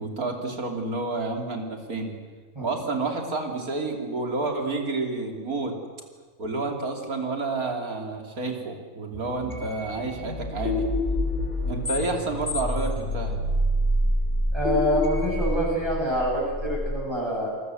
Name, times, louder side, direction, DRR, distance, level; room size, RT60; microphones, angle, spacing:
voice 1, 0.0-2.2 2.6-5.8 6.4-10.9 11.7-13.4, right 3 dB, 80° right, 3 dB, 3.5 m, -30 dB
sound 1, 9.1-17.0, left 1 dB, 35° left, 3.3 m, -27 dB
voice 2, 14.5-17.5, equal, 15° right, -4 dB, 8.0 m, -26 dB
27.5 x 20.0 x 7.9 m, 1.4 s
omnidirectional pair, 1.5 m